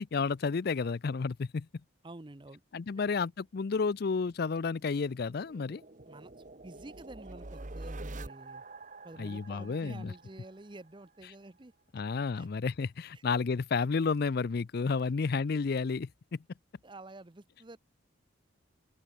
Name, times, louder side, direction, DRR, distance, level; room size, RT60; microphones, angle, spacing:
voice 1, 0.0-1.7 2.7-5.8 9.2-10.1 11.9-16.4, left 4 dB, 50° left, 0.4 m, -31 dB
voice 2, 2.0-2.6 2.9-3.1 6.1-8.6 9.0-11.7 12.3-12.5 13.1-13.2 16.8-17.8, right 2 dB, 25° right, 0.8 m, -49 dB
sound 1, 4.3-11.1, right 2 dB, 40° right, 1.3 m, -47 dB
open air
head